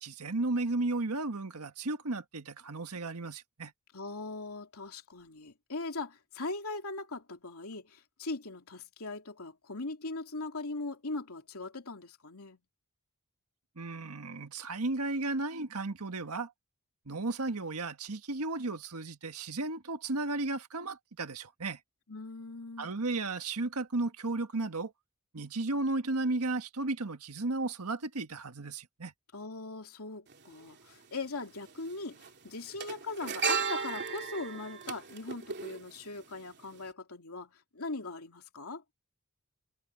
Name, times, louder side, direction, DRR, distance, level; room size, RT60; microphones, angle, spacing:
voice 1, 0.0-3.7 13.7-16.5 17.0-21.8 22.8-24.9 25.3-29.1, right 2 dB, 90° right, 1.6 m, -34 dB
voice 2, 3.9-12.6 22.1-22.9 29.3-38.8, left 3 dB, 75° left, 3.0 m, -40 dB
sound 1, 30.3-30.4 31.6-31.9 32.1-36.4 36.7-36.9, right 5 dB, 50° right, 2.9 m, -35 dB
head